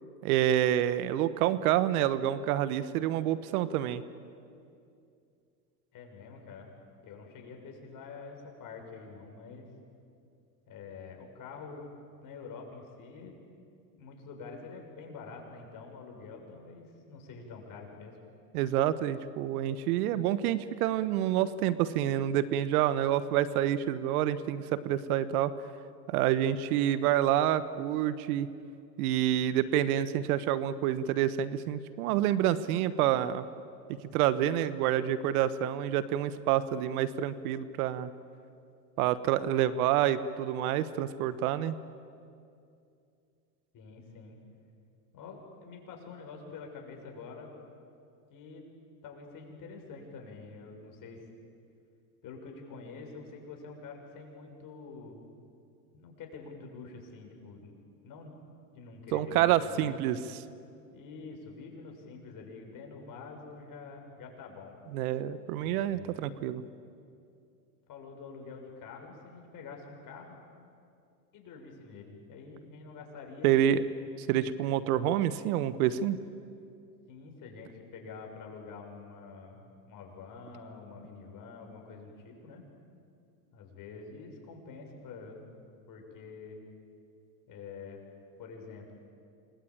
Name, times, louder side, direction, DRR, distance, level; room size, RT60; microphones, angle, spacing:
voice 1, 0.2-4.0 18.5-25.5 26.1-28.5 29.0-33.4 34.1-38.1 39.0-41.8 59.1-60.2 64.9-66.6 73.4-73.8 74.3-76.2, right 11 dB, 60° right, 14 dB, 1.3 m, -28 dB
voice 2, 5.9-6.7 7.0-9.7 10.7-11.9 12.2-13.3 14.0-18.2 43.7-44.4 45.1-47.5 48.3-48.7 49.0-51.2 52.2-55.2 55.9-57.8 58.0-58.3 58.7-60.0 60.9-64.8 65.6-66.2 67.9-70.4 71.3-73.8 77.1-82.6 83.5-85.5 85.9-86.6 87.5-88.0 88.4-88.9, left 4 dB, 40° left, 2 dB, 7.1 m, -46 dB
28.0 x 22.5 x 8.8 m, 2.5 s
hypercardioid pair, 105°, 49 cm